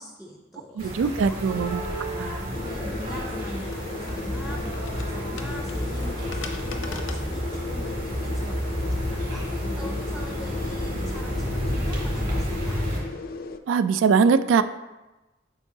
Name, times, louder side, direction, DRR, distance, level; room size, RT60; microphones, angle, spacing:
voice 1, 0.0-1.6 1.9-12.8, equal, ahead, 0 dB, 0.5 m, -42 dB
sound 1, 0.8-13.0, equal, 45° right, 2.3 m, -30 dB
voice 2, 0.8-1.8 2.2-2.4 13.7-14.6, right 5 dB, 80° right, 13 dB, 0.3 m, -21 dB
sound 2, 2.5-13.6, left 3 dB, 50° left, 0.4 m, -36 dB
sound 3, 3.4-8.5, left 4 dB, 85° left, 0.7 m, -42 dB
8.2 x 5.4 x 2.7 m, 1.1 s
head